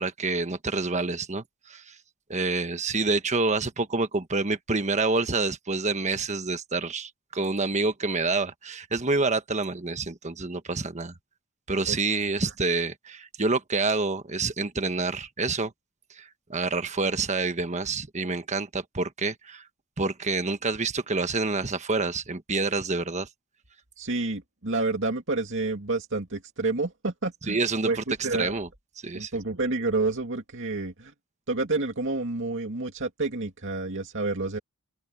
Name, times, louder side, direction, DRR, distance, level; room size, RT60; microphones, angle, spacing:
voice 1, 0.0-1.9 2.3-11.1 11.7-15.7 16.2-19.6 20.0-23.3 27.5-28.0 28.3-28.7 29.0-29.3, right 3 dB, 35° right, 1.3 m, -27 dB
voice 2, 24.0-27.6 27.8-28.5 29.1-31.1 31.5-34.6, right 3 dB, 60° right, 2.4 m, -29 dB
open air
head